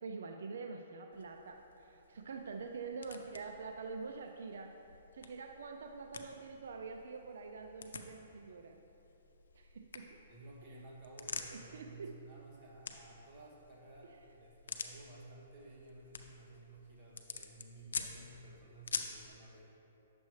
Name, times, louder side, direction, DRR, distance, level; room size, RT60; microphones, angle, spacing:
voice 1, 0.0-4.7 5.1-8.8 9.5-10.2 11.5-12.1, right 4 dB, 75° right, 4 dB, 0.5 m, -46 dB
sound 1, 1.1-19.3, left 5 dB, 90° left, 0.6 m, -49 dB
voice 2, 10.3-19.7, right 2 dB, 30° right, -4 dB, 1.6 m, -54 dB
9.1 x 6.8 x 3.2 m, 2.9 s
hypercardioid pair, 155°, 0 cm